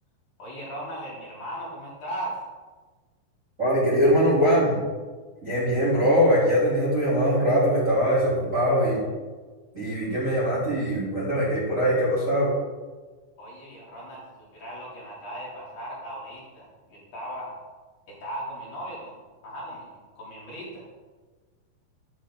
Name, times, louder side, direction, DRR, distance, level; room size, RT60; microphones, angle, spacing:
voice 1, 0.4-2.4 13.4-17.6 18.1-20.8, right 1 dB, 50° left, -6 dB, 4.4 m, -38 dB
voice 2, 3.6-4.8 5.4-9.0 9.7-12.5, equal, 20° right, -10 dB, 3.1 m, -22 dB
11.5 x 9.1 x 3.8 m, 1.4 s
omnidirectional pair, 4.7 m